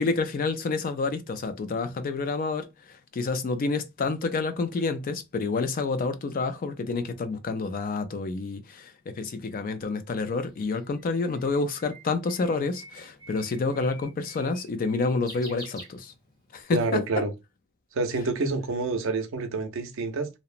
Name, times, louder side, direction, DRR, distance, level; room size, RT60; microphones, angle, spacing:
voice 1, 0.0-2.7 3.1-16.1 16.5-17.0, left 3 dB, 40° left, 0.3 m, -28 dB
Bird, 10.3-16.5, equal, 20° left, 1.0 m, -48 dB
voice 2, 16.7-17.3 17.9-20.3, right 3 dB, 65° right, 0.5 m, -28 dB
2.8 x 2.0 x 2.4 m
head